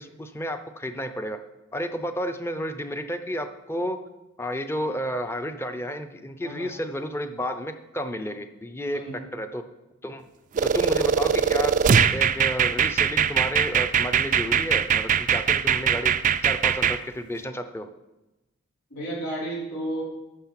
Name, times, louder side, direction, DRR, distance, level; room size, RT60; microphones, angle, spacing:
voice 1, 0.0-1.4 1.7-4.0 4.4-9.6 10.0-10.3 10.6-11.7 12.1-16.1 16.4-17.9, equal, 10° left, 8 dB, 0.6 m, -31 dB
voice 2, 8.9-9.2 18.9-20.0, right 1 dB, 90° left, -6 dB, 5.0 m, -32 dB
sound 1, 10.6-17.0, right 7 dB, 35° right, 0.3 m, -21 dB
11.5 x 7.1 x 5.8 m, 1.0 s
head